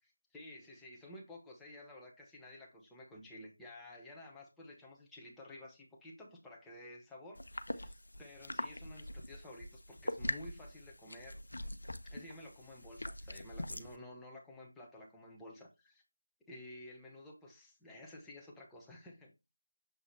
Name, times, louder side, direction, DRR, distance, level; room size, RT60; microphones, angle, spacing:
voice 1, 0.3-11.4 12.0-16.0 16.5-19.3, left 1 dB, 5° left, 1.1 m, -52 dB
sound 1, 7.4-13.9, left 1 dB, 65° left, 1.0 m, -43 dB
7.4 x 3.9 x 3.3 m
figure-of-eight pair, 170°, 0 cm